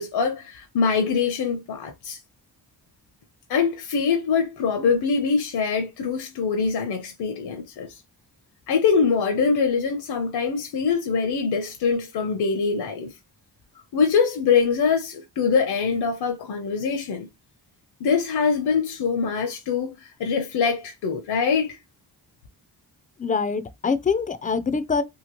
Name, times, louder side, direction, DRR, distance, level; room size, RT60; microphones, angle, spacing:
voice 1, 0.0-2.2 3.5-8.0 8.7-13.1 13.9-17.3 18.0-21.8, left 5 dB, 75° left, 0.6 m, -23 dB
voice 2, 23.2-25.0, left 5 dB, 20° left, 0.3 m, -24 dB
2.9 x 2.4 x 2.9 m
cardioid pair, 85°, 40 cm